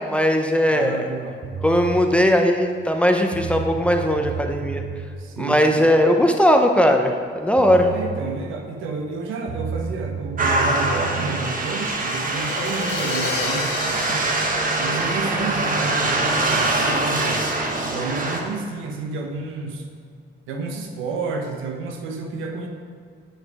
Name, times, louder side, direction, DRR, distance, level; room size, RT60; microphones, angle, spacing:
voice 1, 0.0-1.0 1.6-4.8 5.4-7.9, equal, 5° left, 3 dB, 0.7 m, -18 dB
voice 2, 0.7-1.4 5.2-5.9 7.8-14.3 14.8-17.5 17.8-19.9 20.5-22.7, right 4 dB, 85° right, 3 dB, 1.0 m, -30 dB
sound 1, 1.4-1.9 3.0-3.1 3.3-5.0 7.2-7.3 7.6-8.2 9.5-11.2, right 6 dB, 65° right, 1.3 m, -31 dB
sound 2, 10.4-18.4, right 2 dB, 45° right, 1.2 m, -23 dB
Crash cymbal, 12.3-16.1, left 5 dB, 55° left, 1.0 m, -32 dB
9.1 x 5.1 x 4.8 m, 2.2 s
cardioid pair, 90°, 20 cm